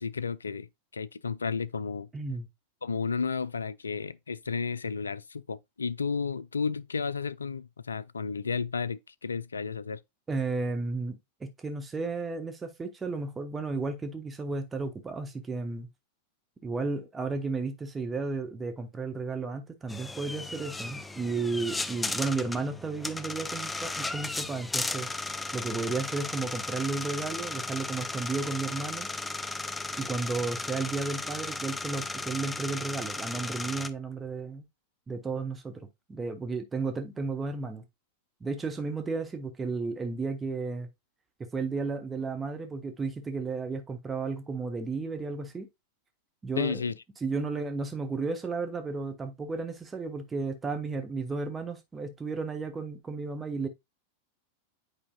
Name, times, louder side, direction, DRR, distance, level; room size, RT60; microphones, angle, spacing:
voice 1, 0.0-2.1 2.8-10.0 46.6-46.9, left 5 dB, 75° left, 0.3 m, -32 dB
voice 2, 2.1-2.5 10.3-15.9 16.6-25.1 25.5-29.1 30.0-34.6 35.1-37.8 38.4-40.9 41.5-45.7 46.4-46.8 47.2-53.7, right 4 dB, 15° right, 0.9 m, -33 dB
sound 1, 19.9-33.9, left 3 dB, 10° left, 0.4 m, -35 dB
8.6 x 5.0 x 2.3 m
figure-of-eight pair, 90°, 0 cm